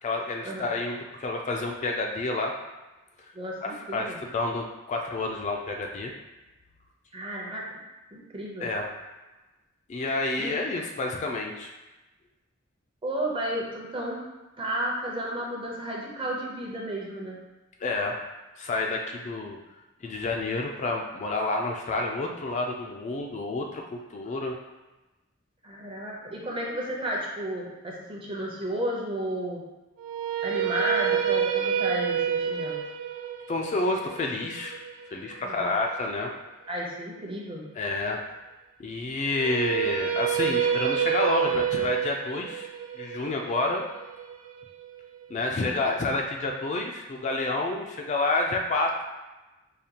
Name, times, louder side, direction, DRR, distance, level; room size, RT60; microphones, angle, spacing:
voice 1, 0.0-2.5 3.6-6.1 8.6-8.9 9.9-11.7 17.8-18.2 18.6-19.6 20.0-24.6 33.5-34.7 35.1-36.3 37.7-38.2 38.8-42.7 43.0-43.8 45.3-49.1, left 2 dB, 35° left, 1 dB, 0.3 m, -29 dB
voice 2, 3.3-4.2 7.1-7.6 8.1-8.7 10.4-10.5 13.0-14.2 14.6-17.4 25.6-29.7 30.4-32.8 35.4-35.7 36.7-37.7, right 1 dB, 25° right, -2 dB, 0.7 m, -32 dB
sound 1, 30.0-36.1 39.3-45.4, right 9 dB, 85° right, 0.3 m, -29 dB
4.9 x 2.3 x 2.8 m, 1.1 s
head